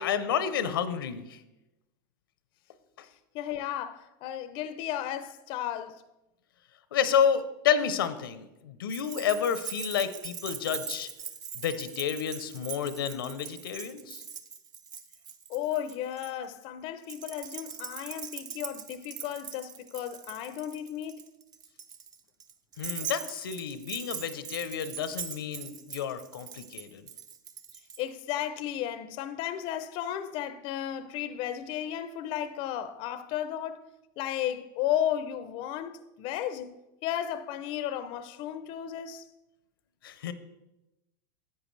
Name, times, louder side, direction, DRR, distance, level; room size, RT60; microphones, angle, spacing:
voice 1, 0.0-1.4 3.0-3.1 6.9-11.1 11.5-14.2 22.8-27.1 40.0-40.3, left 8 dB, 85° left, 0.7 m, -30 dB
voice 2, 3.0-6.0 15.5-21.2 28.0-33.8 34.2-39.3, left 11 dB, 50° left, 0.5 m, -34 dB
Keys jangling, 8.9-16.3 17.0-28.0, right 7 dB, 35° right, 0.7 m, -41 dB
10.5 x 8.4 x 3.2 m
hypercardioid pair, 115°, 11 cm